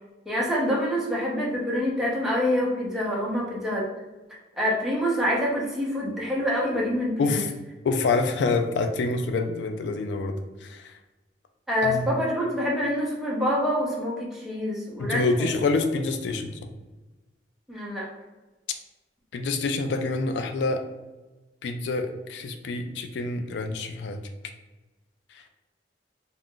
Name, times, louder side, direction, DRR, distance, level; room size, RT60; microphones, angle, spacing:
voice 1, 0.3-3.9 4.6-7.4 11.7-15.5 17.7-18.1, equal, ahead, -5 dB, 0.6 m, -26 dB
voice 2, 7.2-7.5 7.8-11.0 11.8-12.1 15.0-16.6 19.3-20.8 21.6-24.2 25.3-25.4, left 3 dB, 70° left, 6 dB, 0.3 m, -27 dB
2.3 x 2.1 x 3.7 m, 1.2 s
head